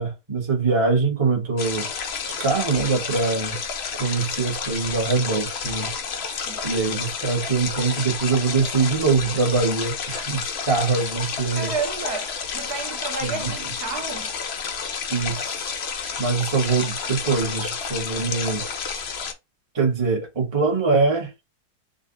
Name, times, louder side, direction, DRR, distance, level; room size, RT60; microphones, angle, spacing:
voice 1, 0.0-1.9 2.4-3.6 4.0-5.9 6.3-6.4 6.6-11.7 13.2-13.5 15.1-18.6 18.9-19.1 19.7-21.3, right 4 dB, 20° right, 0.9 m, -23 dB
sound 1, 1.6-19.3, left 6 dB, 70° left, 0.6 m, -30 dB
voice 2, 11.5-14.3, right 4 dB, 65° right, 1.3 m, -31 dB
3.8 x 2.4 x 3.9 m
omnidirectional pair, 1.9 m